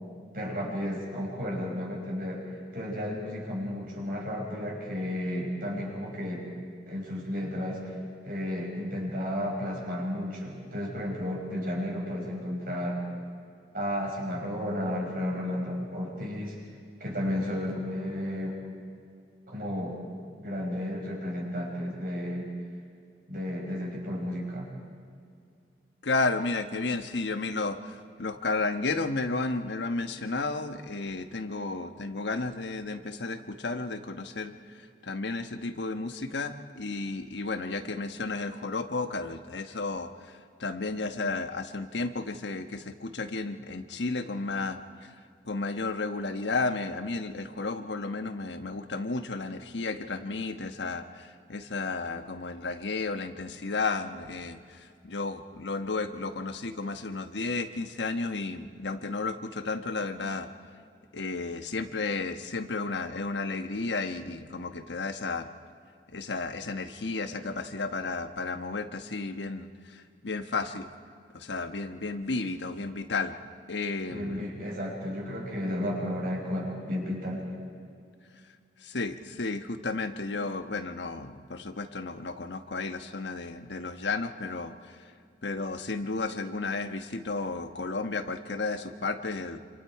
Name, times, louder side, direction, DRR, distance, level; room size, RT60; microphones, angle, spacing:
voice 1, 0.3-2.5 2.7-6.5 6.9-8.0 8.2-13.1 13.7-16.6 17.0-18.6 19.5-20.0 20.4-22.5 23.3-24.7 74.1-77.5, left 1 dB, 55° right, -1 dB, 5.8 m, -33 dB
voice 2, 26.0-27.8 28.2-34.5 35.1-40.1 40.6-44.8 45.5-51.0 51.5-54.6 55.0-60.5 61.1-65.4 66.1-69.7 70.2-70.8 71.5-73.3 73.7-74.4 78.9-84.7 85.4-89.6, left 3 dB, 85° left, 8 dB, 1.2 m, -32 dB
27.5 x 26.5 x 4.7 m, 2.3 s
head